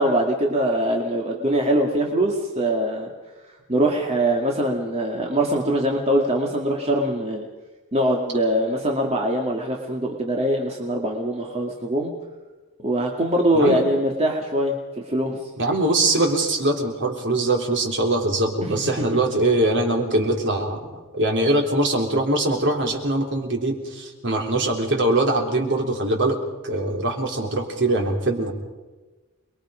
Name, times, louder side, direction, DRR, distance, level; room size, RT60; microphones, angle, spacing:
voice 1, 0.0-3.1 3.7-7.5 7.9-12.1 12.8-14.7 15.1-15.5 18.6-19.0, right 1 dB, 30° right, 0 dB, 2.4 m, -22 dB
voice 2, 15.6-26.4 26.6-28.5, right 2 dB, 55° right, 2 dB, 3.7 m, -22 dB
28.0 x 22.5 x 5.2 m, 1.2 s
head